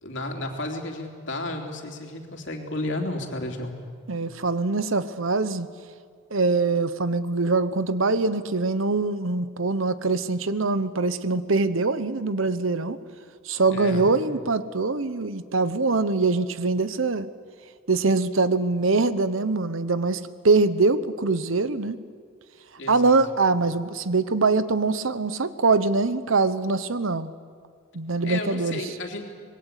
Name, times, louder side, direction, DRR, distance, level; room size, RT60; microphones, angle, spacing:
voice 1, 0.0-3.7 13.7-14.1 22.8-23.2 28.2-29.3, left 2 dB, 60° left, 2 dB, 3.3 m, -32 dB
voice 2, 4.1-5.7 6.3-13.0 13.4-17.3 17.9-22.0 22.9-27.3 27.9-28.8, right 3 dB, 75° right, 13 dB, 1.0 m, -23 dB
26.0 x 21.0 x 8.3 m, 2.1 s
head